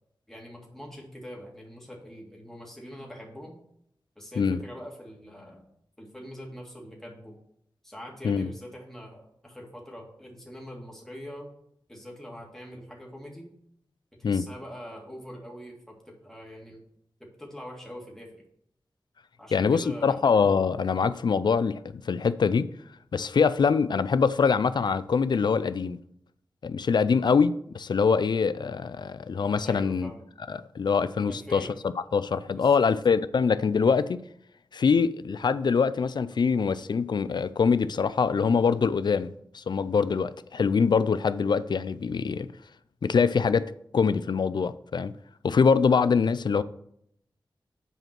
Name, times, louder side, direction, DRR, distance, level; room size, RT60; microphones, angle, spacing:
voice 1, 0.3-3.6 4.2-5.7 6.0-7.3 7.8-11.5 11.9-13.5 14.2-16.8 17.4-18.3 19.4-20.2 29.6-30.2 31.3-31.7 32.5-32.9, equal, 5° left, 2.1 m, -43 dB
voice 2, 19.5-22.7 23.1-26.0 26.6-30.1 30.5-31.7 32.1-34.2 34.7-42.5 43.0-45.1 45.4-46.6, left 5 dB, 65° left, 0.4 m, -24 dB
7.7 x 5.1 x 6.0 m
wide cardioid pair, 70°, 8 cm